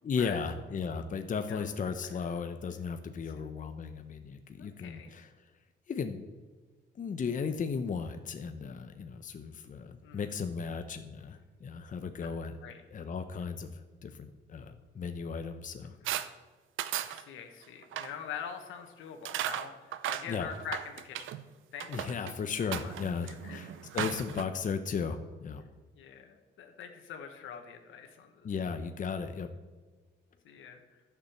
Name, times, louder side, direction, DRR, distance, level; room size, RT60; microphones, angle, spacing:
voice 1, 0.0-5.3 5.9-6.2 7.0-12.5 12.9-15.9 20.3-20.5 21.9-25.6 28.4-29.5, left 5 dB, 40° left, 8 dB, 0.9 m, -35 dB
voice 2, 4.6-5.1 10.0-10.3 12.6-12.8 16.0-16.3 17.0-21.3 21.7-22.9 23.2-23.8 24.2-24.4 25.9-28.5 30.4-31.0, left 8 dB, 85° left, 5 dB, 1.6 m, -45 dB
sound 1, 16.1-16.3 16.8-17.2 17.8-18.1 19.3-21.4 21.8-22.3 22.7-24.4, right 12 dB, 80° right, 0.7 m, -36 dB
11.0 x 6.9 x 7.1 m, 1.4 s
cardioid pair, 90°, 20 cm